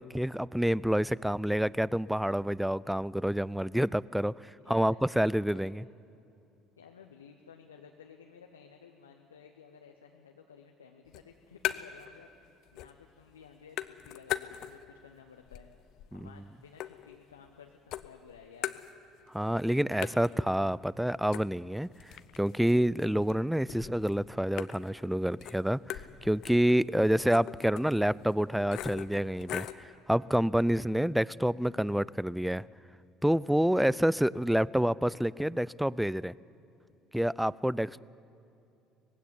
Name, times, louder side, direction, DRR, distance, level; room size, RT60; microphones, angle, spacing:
voice 1, 0.0-5.8 16.1-16.3 19.3-21.9 22.4-29.7 30.1-32.6 33.2-36.3 37.1-38.0, equal, 5° right, 22 dB, 0.4 m, -28 dB
voice 2, 5.4-5.7 6.8-15.7 16.1-18.8, left 6 dB, 85° left, 3 dB, 0.9 m, -54 dB
sound 1, 11.1-12.1 12.4-13.1 13.4-15.0 15.4-17.6 17.9-19.3 19.6-19.7 20.0-29.9, left 12 dB, 60° left, 0.7 m, -41 dB
19.0 x 16.0 x 9.6 m, 2.7 s
hypercardioid pair, 60°, 0 cm